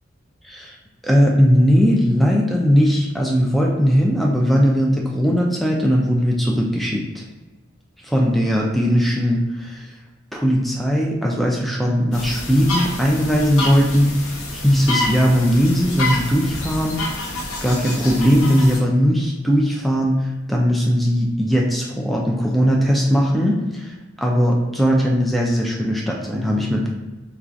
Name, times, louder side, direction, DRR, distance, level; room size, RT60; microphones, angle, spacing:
voice 1, 0.4-0.8 1.0-7.2 8.0-9.9 10.3-17.0 17.6-20.2 20.5-26.9, equal, ahead, -2 dB, 0.4 m, -19 dB
sound 1, 12.1-18.8, left 2 dB, 85° left, 0.7 m, -28 dB
4.4 x 2.3 x 2.5 m, 1.1 s
head